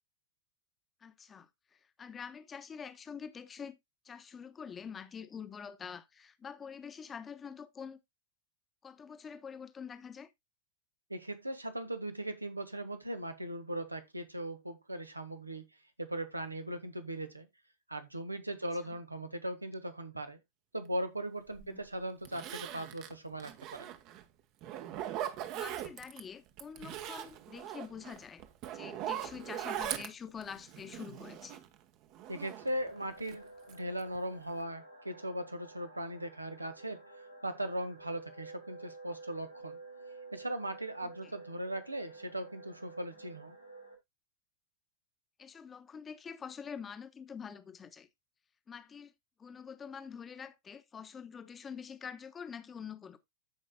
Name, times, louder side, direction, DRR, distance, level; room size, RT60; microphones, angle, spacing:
voice 1, 1.0-3.8 4.0-8.0 8.8-10.3 21.6-21.8 25.5-28.4 28.7-31.6 41.0-41.3 45.4-48.1 48.7-49.1 49.4-53.2, left 6 dB, 20° left, 1.1 m, -46 dB
voice 2, 11.1-15.6 16.0-17.5 17.9-20.4 20.7-23.9 32.3-39.8 40.3-43.6, right 1 dB, 85° right, 1.5 m, -39 dB
Zipper (clothing), 21.6-21.7 22.2-24.2 24.6-26.2 26.6-31.7 32.1-33.3 33.7-34.2 34.5-34.6, right 11 dB, 40° right, 1.2 m, -41 dB
sound 1, 32.6-44.0, right 3 dB, 85° left, 4.6 m, -52 dB
14.5 x 5.3 x 2.2 m
figure-of-eight pair, 90°, 0 cm